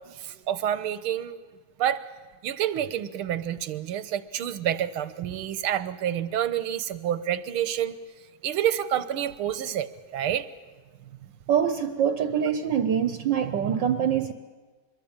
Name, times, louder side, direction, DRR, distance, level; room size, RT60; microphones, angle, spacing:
voice 1, 0.1-1.4 1.8-2.0 2.4-8.0 8.4-10.5, right 10 dB, 90° right, 14 dB, 1.9 m, -28 dB
voice 2, 11.5-14.3, right 8 dB, 65° right, 10 dB, 1.5 m, -24 dB
24.5 x 22.0 x 8.8 m, 1.4 s
omnidirectional pair, 2.3 m